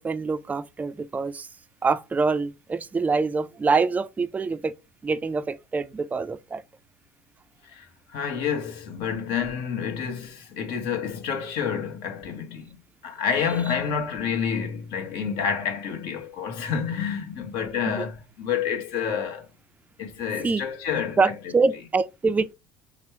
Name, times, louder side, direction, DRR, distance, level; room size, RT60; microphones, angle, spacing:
voice 1, 0.0-1.5 1.8-4.7 5.0-6.6 18.0-18.1 20.4-20.6 21.2-22.5, right 4 dB, 15° right, 0.3 m, -25 dB
voice 2, 8.1-12.8 13.0-19.5 20.0-21.3, left 7 dB, 65° left, 1.1 m, -29 dB
4.2 x 2.0 x 4.4 m
hypercardioid pair, 70°, 9 cm